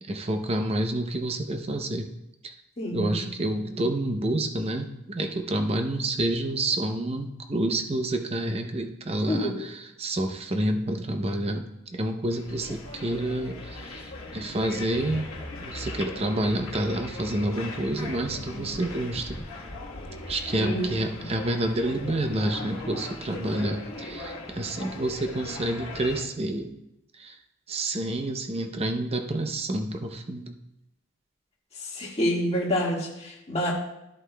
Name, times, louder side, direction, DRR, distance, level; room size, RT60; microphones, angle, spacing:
voice 1, 0.0-2.1 2.4-2.5 2.9-15.3 15.6-19.4 20.3-26.7 27.1-27.4 27.7-30.5, right 1 dB, 30° right, 5 dB, 0.6 m, -29 dB
voice 2, 2.8-3.2 3.6-3.8 9.2-9.6 10.8-10.9 20.6-20.9 21.2-21.3 31.8-33.7, equal, 30° left, -3 dB, 1.7 m, -28 dB
sound 1, 12.3-26.2, left 2 dB, 75° left, 1.3 m, -39 dB
12.5 x 8.0 x 2.2 m, 0.86 s
head